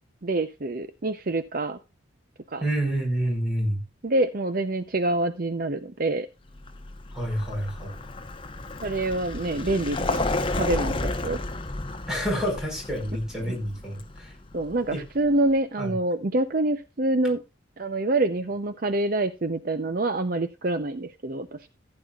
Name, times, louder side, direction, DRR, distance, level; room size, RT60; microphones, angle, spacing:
voice 1, 0.2-1.8 2.5-2.6 4.0-6.3 8.8-10.2 10.6-11.4 13.5-13.6 14.5-17.4 17.8-21.7, right 2 dB, 45° right, 10 dB, 0.7 m, -26 dB
voice 2, 2.6-3.8 7.1-7.9 12.1-14.3 14.9-15.0 15.8-16.0, equal, 5° right, 0 dB, 4.7 m, -28 dB
Vehicle, 6.6-15.4, left 2 dB, 25° left, 0.9 m, -32 dB
15.0 x 9.8 x 2.4 m, 0.25 s
head